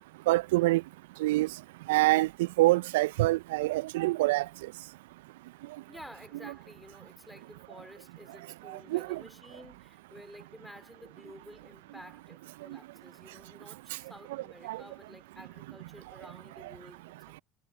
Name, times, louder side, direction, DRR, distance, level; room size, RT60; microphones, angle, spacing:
voice 1, 0.3-0.8 1.2-1.5 1.9-4.5 8.9-9.2 14.6-14.8, right 19 dB, 70° right, 0.6 m, -25 dB
voice 2, 5.9-17.4, left 1 dB, 5° left, 4.3 m, -52 dB
figure-of-eight pair, 65°, 0 cm